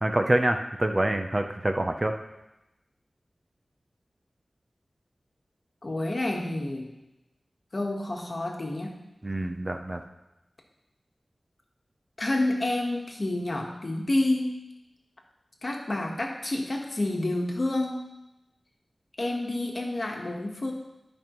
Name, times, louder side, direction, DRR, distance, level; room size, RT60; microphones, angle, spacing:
voice 1, 0.0-2.1 9.2-10.0, right 1 dB, 35° right, 5 dB, 0.6 m, -26 dB
voice 2, 5.8-6.9 7.7-8.9 12.2-14.6 15.6-18.0 19.2-20.7, left 2 dB, 50° left, 1 dB, 1.3 m, -29 dB
12.5 x 5.3 x 3.1 m, 0.94 s
wide cardioid pair, 65°, 0 cm